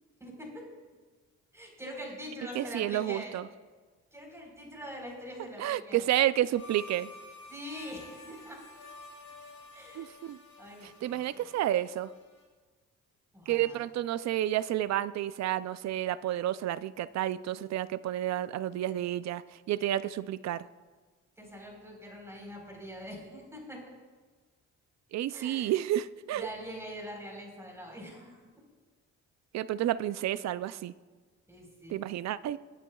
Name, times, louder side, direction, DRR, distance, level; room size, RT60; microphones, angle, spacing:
voice 1, 0.2-0.6 1.5-3.4 4.1-6.0 7.5-8.6 9.7-10.2 10.6-11.2 13.3-13.8 21.4-23.8 25.3-25.7 26.3-28.4 31.5-32.0, equal, 10° right, -1 dB, 4.1 m, -43 dB
voice 2, 2.5-3.5 5.6-7.1 10.0-10.4 10.8-12.1 13.5-20.7 25.1-26.5 29.5-30.9 31.9-32.6, right 13 dB, 65° right, 17 dB, 0.5 m, -30 dB
sound 1, 6.6-12.4, left 2 dB, 80° left, 3.1 m, -51 dB
23.5 x 9.1 x 2.3 m, 1.4 s
cardioid pair, 90°, 30 cm